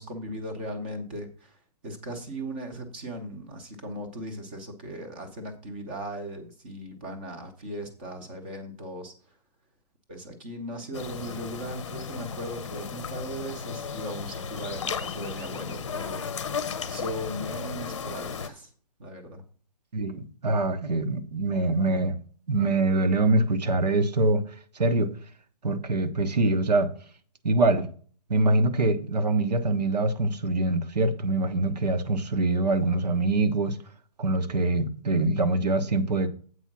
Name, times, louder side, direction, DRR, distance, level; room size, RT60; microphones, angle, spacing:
voice 1, 0.0-9.1 10.1-16.2 16.9-18.7 19.0-19.4, right 1 dB, 15° right, 0.7 m, -38 dB
sound 1, 10.9-18.5, left 6 dB, 45° left, 0.7 m, -35 dB
voice 2, 19.9-22.2 22.5-24.4 24.7-25.1 25.6-26.9 27.4-27.9 28.3-33.8 34.2-36.3, right 2 dB, 75° right, 1.2 m, -24 dB
8.1 x 4.9 x 5.9 m
hypercardioid pair, 175°, 21 cm